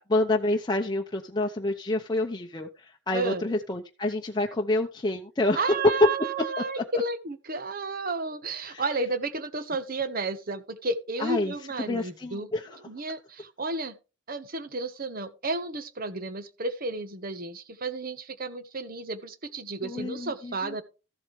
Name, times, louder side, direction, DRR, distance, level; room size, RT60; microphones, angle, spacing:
voice 1, 0.1-5.6 6.7-6.8 8.7-8.8 11.2-11.5 11.9-12.7 19.8-20.7, left 2 dB, 25° left, 0.8 m, -28 dB
voice 2, 5.5-12.5 12.8-14.0 14.3-20.8, right 3 dB, 50° right, 1.1 m, -32 dB
14.0 x 7.8 x 3.2 m
head